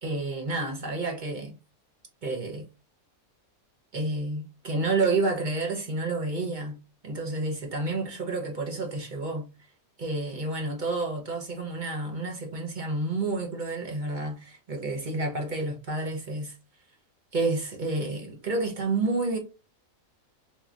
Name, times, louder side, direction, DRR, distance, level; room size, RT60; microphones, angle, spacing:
voice 1, 0.0-1.5 2.2-2.7 3.9-9.5 10.0-16.6 17.3-19.4, right 3 dB, 40° right, 0.8 m, -30 dB
3.8 x 2.8 x 2.4 m
omnidirectional pair, 1.5 m